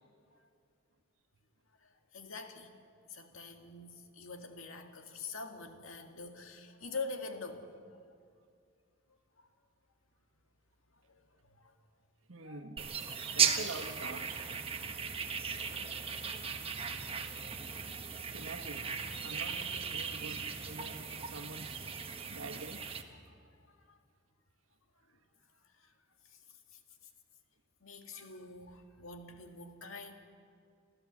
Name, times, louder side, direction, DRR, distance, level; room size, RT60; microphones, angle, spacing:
voice 1, 1.7-2.7 3.1-7.7 9.4-9.5 11.0-11.8 12.4-12.7 13.1-13.6 15.2-15.3 16.2-17.8 18.1-18.5 23.1-24.0 25.1-25.2 25.6-25.9 26.2-26.4 26.7-26.8 27.8-30.1, left 3 dB, 80° left, 5 dB, 2.0 m, -47 dB
voice 2, 12.3-12.8 13.3-15.1 18.3-18.9 19.2-21.9 22.3-22.9, right 3 dB, 80° right, 5 dB, 1.5 m, -46 dB
sound 1, 12.8-23.0, right 6 dB, 30° right, 1.2 m, -37 dB
29.5 x 13.0 x 7.4 m, 2.4 s
head